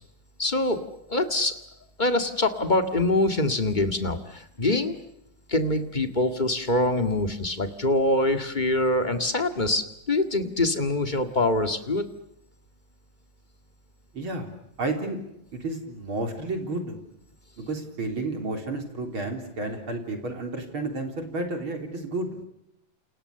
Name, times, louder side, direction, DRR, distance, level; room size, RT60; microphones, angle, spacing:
voice 1, 0.4-0.8 1.1-1.6 2.0-4.9 5.5-12.0, left 2 dB, 25° left, 7 dB, 1.0 m, -24 dB
voice 2, 14.1-14.5 14.8-15.2 15.6-17.0 17.6-22.4, right 2 dB, 40° right, 4 dB, 4.4 m, -31 dB
29.5 x 29.0 x 6.8 m, 0.82 s
omnidirectional pair, 3.9 m